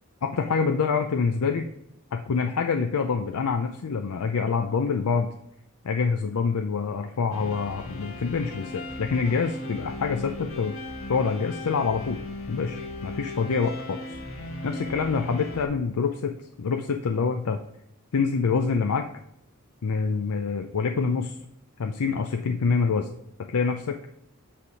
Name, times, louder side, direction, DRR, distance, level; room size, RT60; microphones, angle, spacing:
voice 1, 0.2-1.7 2.1-5.3 5.8-10.7 11.1-12.2 12.5-14.0 14.6-17.6 18.1-19.1 19.8-21.4 21.8-23.1 23.5-24.0, left 5 dB, 90° left, 5 dB, 0.5 m, -26 dB
sound 1, 7.3-15.7, left 1 dB, 70° left, 1.4 m, -37 dB
8.4 x 3.5 x 4.7 m, 0.75 s
head